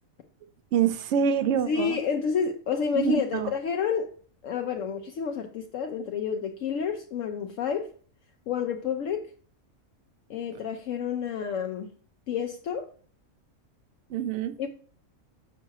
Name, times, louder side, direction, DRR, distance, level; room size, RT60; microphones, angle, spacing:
voice 1, 0.7-2.0 2.9-3.5 14.1-14.5, right 7 dB, 65° right, 12 dB, 0.8 m, -25 dB
voice 2, 1.7-4.1 4.4-7.9 8.5-9.3 10.3-11.9 12.3-12.9 14.6-14.7, left 6 dB, 70° left, 4 dB, 1.0 m, -29 dB
7.2 x 5.7 x 2.8 m, 0.44 s
omnidirectional pair, 1.5 m